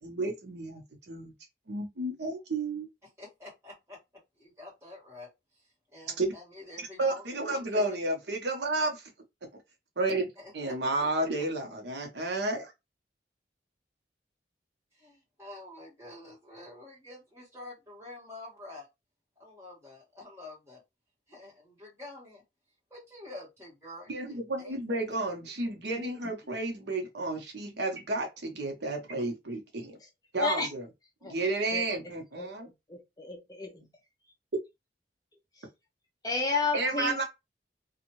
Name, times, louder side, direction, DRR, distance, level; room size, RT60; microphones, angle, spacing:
voice 1, 0.0-1.3 1.7-2.9 6.2-6.3 7.0-9.1 10.0-10.3 10.5-12.7 24.1-29.9 30.3-30.8 31.2-32.7 36.7-37.2, right 2 dB, 80° right, 0.9 m, -31 dB
voice 2, 3.2-4.0 4.4-7.9 10.4-10.8 14.9-18.9 19.4-20.8 21.3-22.4 22.9-24.8, left 2 dB, 15° right, 1.6 m, -48 dB
voice 3, 30.4-30.7 31.2-31.4 31.7-31.8 32.3-32.5 32.9-33.9 35.6-35.7 36.2-37.2, left 3 dB, 20° left, 0.5 m, -32 dB
2.7 x 2.4 x 3.0 m
head